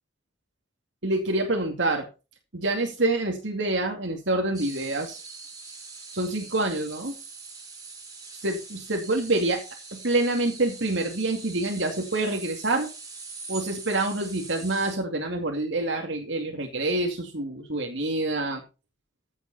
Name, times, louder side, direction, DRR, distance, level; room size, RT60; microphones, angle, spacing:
voice 1, 1.0-2.1 2.5-5.2 6.1-7.1 8.4-8.6 8.9-9.6 9.9-12.9 13.5-18.6, right 2 dB, 80° right, 2 dB, 2.4 m, -26 dB
sound 1, 4.5-15.0, right 4 dB, 20° right, 6.0 m, -43 dB
14.5 x 8.1 x 4.2 m, 0.31 s
head